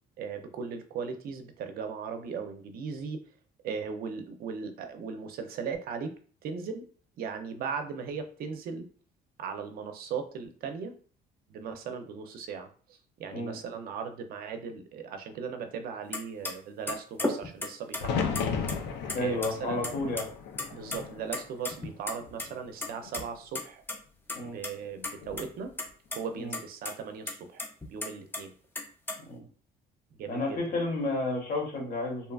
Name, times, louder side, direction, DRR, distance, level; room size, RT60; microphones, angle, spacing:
voice 1, 0.2-3.2 3.6-6.1 6.4-6.8 7.2-8.9 9.4-10.9 11.5-18.8 19.2-19.9 20.7-23.8 24.4-25.7 26.1-27.6 27.9-28.5 30.1-30.6, right 6 dB, 60° right, 7 dB, 0.5 m, -38 dB
sound 1, 16.1-16.2 16.5-16.6 16.9-18.0 18.4-19.2 19.4-19.5 19.8-20.3 20.5-21.0 21.3-22.5 22.8-23.2 23.6-23.7 23.9-24.0 24.3-24.7 25.0-25.5 25.8-26.2 26.5-26.6 26.9-27.0 27.3-28.4 28.8-29.2, left 2 dB, 10° left, 0.4 m, -33 dB
sound 2, 18.0-22.0 22.4-23.2 25.0-25.5, left 6 dB, 85° left, 0.4 m, -35 dB
voice 2, 19.1-20.3 24.4-24.6 26.4-26.6 29.3-29.4 30.3-32.3, left 2 dB, 55° left, 0 dB, 1.0 m, -31 dB
2.8 x 2.3 x 2.3 m, 0.42 s
cardioid pair, 110°, 17 cm